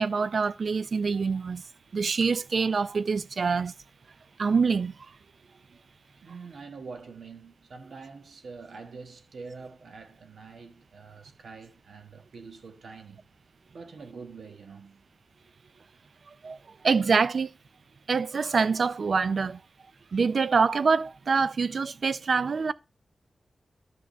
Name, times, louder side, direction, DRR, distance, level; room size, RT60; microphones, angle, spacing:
voice 1, 0.0-1.6 1.9-3.7 4.4-4.9 16.4-16.6 16.8-17.5 18.1-19.6 20.1-22.7, right 5 dB, 55° right, 0.4 m, -25 dB
voice 2, 6.2-13.2 13.7-15.0, right 4 dB, 75° right, 1.3 m, -45 dB
11.0 x 3.7 x 6.4 m
wide cardioid pair, 145°, 0 cm